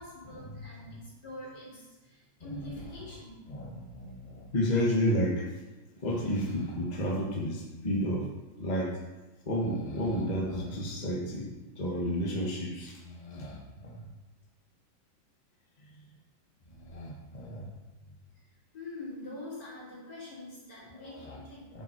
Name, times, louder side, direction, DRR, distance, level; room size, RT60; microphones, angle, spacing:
voice 1, 0.0-3.4 18.3-18.5 18.7-21.8, left 2 dB, 65° left, -8 dB, 4.5 m, -45 dB
voice 2, 3.5-5.5 6.0-8.3 8.6-9.0 9.4-11.5 11.8-14.0 15.8-16.0 16.7-17.7 20.9-21.4 21.7-21.8, equal, 25° left, -3 dB, 1.4 m, -32 dB
9.8 x 7.1 x 4.5 m, 1.1 s
omnidirectional pair, 1.9 m